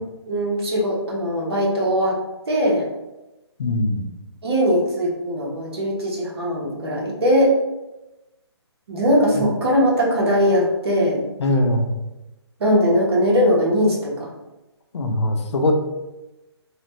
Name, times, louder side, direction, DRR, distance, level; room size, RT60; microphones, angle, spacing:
voice 1, 0.3-2.2 2.5-2.9 4.4-7.5 8.9-11.2 12.6-14.3, equal, 65° right, -3 dB, 1.1 m, -20 dB
voice 2, 3.6-4.1 9.3-9.4 11.4-11.9 14.9-15.7, left 1 dB, 80° left, 4 dB, 0.6 m, -21 dB
3.1 x 2.0 x 3.0 m, 1.0 s
hypercardioid pair, 155°, 14 cm